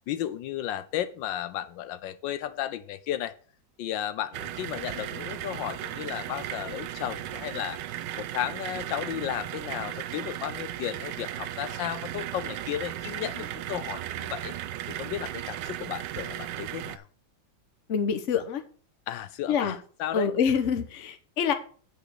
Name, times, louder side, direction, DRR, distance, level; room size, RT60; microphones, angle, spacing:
voice 1, 0.1-3.3 3.8-7.8 8.2-14.5 14.9-17.1 19.1-20.3, left 11 dB, 80° left, 13 dB, 1.3 m, -34 dB
sound 1, 4.3-17.0, right 12 dB, 75° right, 1.2 m, -36 dB
voice 2, 17.9-18.6 19.5-19.8 20.1-21.5, left 7 dB, 50° left, 8 dB, 1.1 m, -26 dB
9.1 x 4.9 x 6.4 m, 0.42 s
omnidirectional pair, 2.0 m